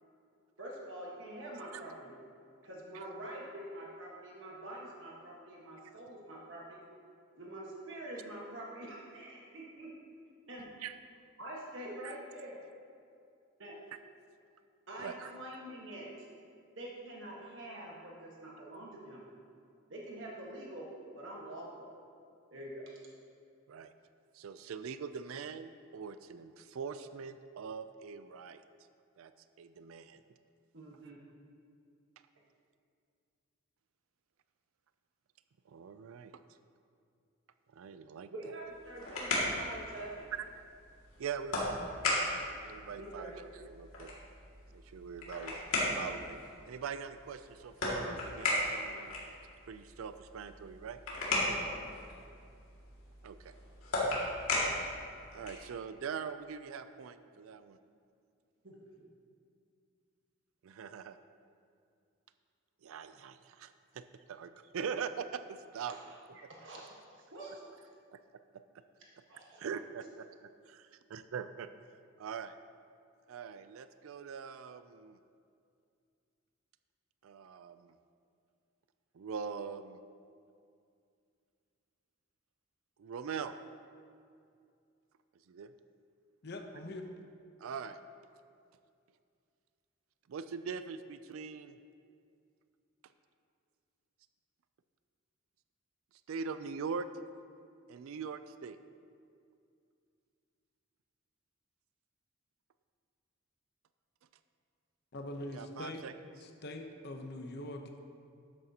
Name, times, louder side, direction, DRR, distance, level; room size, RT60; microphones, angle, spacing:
voice 1, 0.6-2.1 2.6-6.8 7.4-9.9 10.5-10.7 11.4-12.6 13.6-13.8 14.9-16.1 16.8-19.2 19.9-20.9 21.1-21.9 22.5-22.9 30.7-31.2 38.3-40.3 43.0-43.4 58.6-59.1 65.9-66.2 66.5-67.6 69.3-69.6, right 1 dB, 60° right, -3 dB, 1.4 m, -46 dB
voice 2, 15.0-15.3 23.7-23.9 24.3-28.6 29.2-29.3 29.6-30.2 35.7-36.3 37.7-38.5 40.6-40.7 41.2-41.7 42.6-44.1 44.7-45.6 45.9-49.2 49.7-51.0 53.2-53.5 55.3-57.8 60.6-61.2 62.8-66.0 66.4-66.5 68.1-68.2 68.5-68.6 69.6-70.3 70.7-71.7 72.2-72.6 73.3-75.2 77.2-78.0 79.1-80.0 83.0-83.5 85.5-85.7 87.6-88.0 90.3-91.8 96.3-97.1 97.9-98.8 105.5-106.1, right 6 dB, 80° right, 11 dB, 0.4 m, -42 dB
sound 1, 38.6-55.7, left 2 dB, 90° left, 2.2 m, -37 dB
voice 3, 86.4-87.1 105.1-106.0 106.4-108.0, left 1 dB, 50° left, 4 dB, 0.8 m, -43 dB
12.5 x 8.7 x 2.8 m, 2.4 s
head